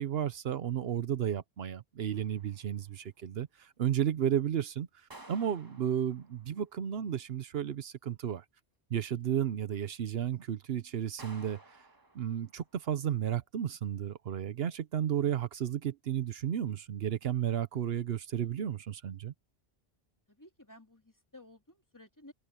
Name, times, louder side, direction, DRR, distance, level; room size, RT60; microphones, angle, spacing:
voice 1, 0.0-8.4 8.9-11.6 12.1-19.3, right 9 dB, 75° right, 1.0 m, -33 dB
sound 1, 2.1-3.0 5.1-6.6 11.2-12.7, right 2 dB, 20° right, 1.4 m, -55 dB
voice 2, 20.3-22.3, left 1 dB, 20° left, 2.5 m, -55 dB
open air
omnidirectional pair, 1.0 m